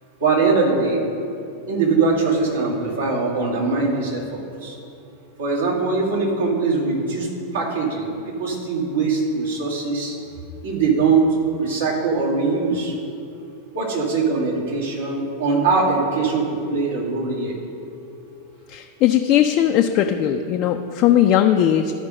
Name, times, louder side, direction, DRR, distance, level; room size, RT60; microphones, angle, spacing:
voice 1, 0.2-1.0 1.7-4.8 5.4-10.2 10.6-13.0 13.7-17.6, right 4 dB, 65° right, -4 dB, 2.1 m, -22 dB
voice 2, 18.7-21.9, left 11 dB, 40° left, 4 dB, 0.4 m, -18 dB
12.5 x 5.1 x 5.3 m, 2.6 s
figure-of-eight pair, 90°, 0 cm